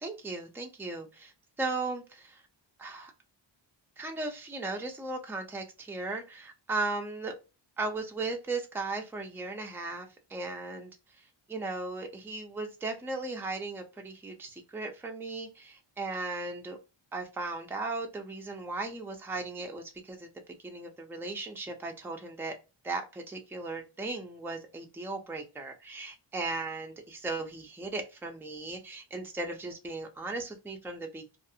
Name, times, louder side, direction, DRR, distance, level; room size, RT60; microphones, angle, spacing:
voice 1, 0.0-2.4 2.8-3.1 4.0-7.3 7.8-16.8 17.1-20.3 20.6-22.5 22.8-31.4, right 3 dB, 5° right, 0.5 m, -37 dB
2.4 x 2.2 x 2.7 m
wide cardioid pair, 75°, 50 cm